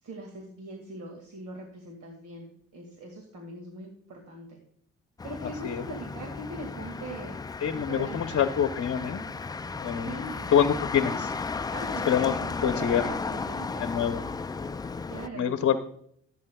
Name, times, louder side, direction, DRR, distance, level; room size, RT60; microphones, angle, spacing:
voice 1, 0.0-4.6 5.2-7.4 7.7-8.4 9.9-10.5 11.7-13.9 15.1-15.6, right 1 dB, 75° right, 2 dB, 2.1 m, -41 dB
Motor vehicle (road), 5.2-15.3, left 4 dB, 15° left, 0.3 m, -34 dB
voice 2, 7.6-9.2 9.8-10.1 10.5-11.3 11.6-11.7 12.1-12.3 12.6-13.0 13.8-14.2 15.3-15.8, left 8 dB, 50° left, 7 dB, 0.8 m, -25 dB
14.5 x 8.5 x 2.3 m, 0.66 s
cardioid pair, 90°, 30 cm